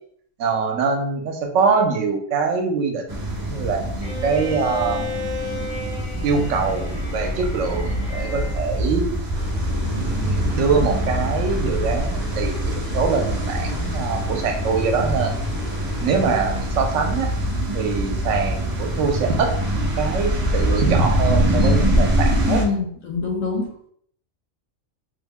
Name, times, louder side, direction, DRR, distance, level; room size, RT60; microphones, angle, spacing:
voice 1, 0.4-5.1 5.5-6.8 7.1-9.1 9.9-15.4 15.9-17.3 17.7-22.6, right 5 dB, 70° right, 4 dB, 0.9 m, -24 dB
sound 1, 3.1-22.6, equal, 35° right, 0.3 m, -24 dB
Bowed string instrument, 4.0-8.7, left 3 dB, 40° left, 0.4 m, -34 dB
sound 2, 9.3-16.6, left 1 dB, 65° left, 1.2 m, -35 dB
voice 2, 22.5-23.7, left 4 dB, 85° left, 0 dB, 1.3 m, -25 dB
3.4 x 2.0 x 3.4 m, 0.63 s
omnidirectional pair, 1.4 m